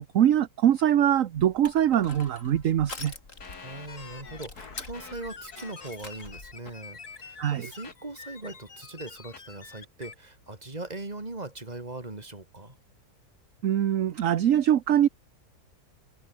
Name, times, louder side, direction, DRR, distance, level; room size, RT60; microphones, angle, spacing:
voice 1, 0.0-3.1 7.4-7.7 13.6-15.1, right 10 dB, 60° right, 1.2 m, -23 dB
Crushing, 1.3-6.6, left 3 dB, 55° left, 3.8 m, -45 dB
sound 1, 3.4-10.1, left 5 dB, 80° left, 2.9 m, -46 dB
voice 2, 3.6-12.8, right 2 dB, 25° right, 2.9 m, -40 dB
omnidirectional pair, 1.6 m